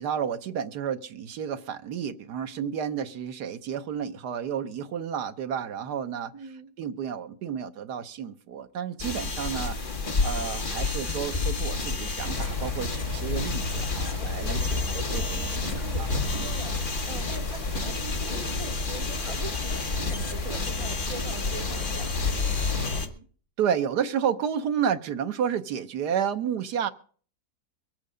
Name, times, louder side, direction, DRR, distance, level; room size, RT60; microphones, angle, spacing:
voice 1, 0.0-6.5 6.8-9.8 10.2-15.6 16.0-16.1 16.3-16.5 23.6-26.9, right 8 dB, 75° right, 8 dB, 1.5 m, -31 dB
voice 2, 6.3-6.7 14.6-23.3, right 3 dB, 25° right, 6 dB, 0.8 m, -43 dB
sound 1, 9.0-23.1, left 3 dB, 35° left, 1.4 m, -30 dB
sound 2, 12.2-23.0, left 3 dB, 60° left, 5.6 m, -33 dB
23.0 x 8.2 x 5.0 m, 0.43 s
omnidirectional pair, 1.8 m